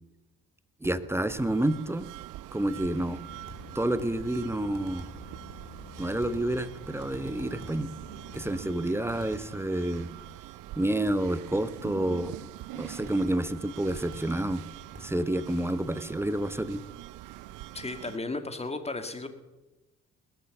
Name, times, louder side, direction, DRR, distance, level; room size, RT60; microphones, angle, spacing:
voice 1, 0.8-2.1 2.5-3.2 3.7-5.1 6.0-7.9 8.3-10.1 10.8-12.5 12.7-14.6 15.0-16.8, right 1 dB, 5° right, 14 dB, 0.9 m, -29 dB
sound 1, 0.8-1.6 3.5-4.3 4.7-5.3 6.0-6.6 7.0-7.9 8.3-8.6 9.1-9.6 11.0-11.3 13.0-13.3 13.9-14.4 14.9-15.2, right 2 dB, 45° right, 3.6 m, -47 dB
sound 2, 1.3-18.2, right 16 dB, 65° right, 0.5 m, -44 dB
sound 3, 2.7-8.7, left 7 dB, 50° left, 1.2 m, -49 dB
voice 2, 17.7-19.3, left 3 dB, 20° left, 8 dB, 2.0 m, -34 dB
20.5 x 7.0 x 6.7 m, 1.1 s
hypercardioid pair, 50°, 33 cm